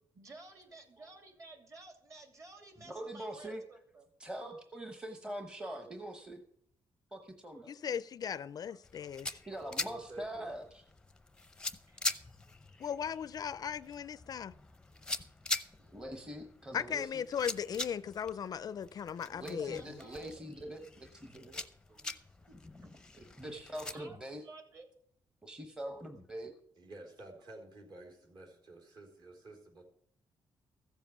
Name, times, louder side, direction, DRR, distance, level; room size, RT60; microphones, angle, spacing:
voice 1, 0.1-4.1 11.9-12.7 15.8-16.0 19.6-20.4 22.5-22.9 23.5-24.9, right 2 dB, 40° right, 4 dB, 2.6 m, -54 dB
voice 2, 2.9-3.6 4.2-6.4 7.1-7.7 9.5-10.8 15.9-17.2 19.3-21.6 23.1-24.4 25.4-26.5, right 1 dB, 10° right, 5 dB, 1.0 m, -43 dB
voice 3, 7.7-9.4 12.8-14.5 16.7-19.8, left 8 dB, 45° left, 16 dB, 0.4 m, -37 dB
sound 1, 8.8-23.9, left 2 dB, 10° left, 0.6 m, -43 dB
voice 4, 8.9-10.6 14.9-15.1 18.2-18.3 21.9-22.4 26.7-29.8, right 2 dB, 55° right, 1 dB, 3.9 m, -52 dB
15.0 x 7.3 x 6.9 m, 0.67 s
wide cardioid pair, 160°, 9 cm